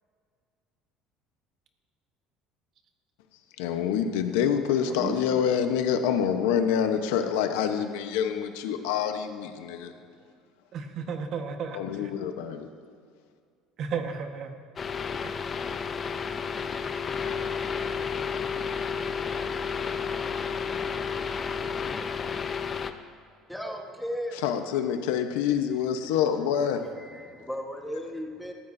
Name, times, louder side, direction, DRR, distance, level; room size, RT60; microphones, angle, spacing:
voice 1, 3.6-9.9 11.7-12.7 24.3-26.8, left 8 dB, 90° left, 6 dB, 1.0 m, -26 dB
voice 2, 10.7-12.1 13.8-14.6 15.2-15.3, right 6 dB, 55° right, 5 dB, 1.4 m, -34 dB
sound 1, 14.8-22.9, left 6 dB, 30° left, 0.7 m, -31 dB
voice 3, 23.5-24.4 27.0-28.5, equal, 5° left, 2 dB, 1.4 m, -35 dB
20.5 x 14.0 x 2.7 m, 2.1 s
supercardioid pair, 110°, 0 cm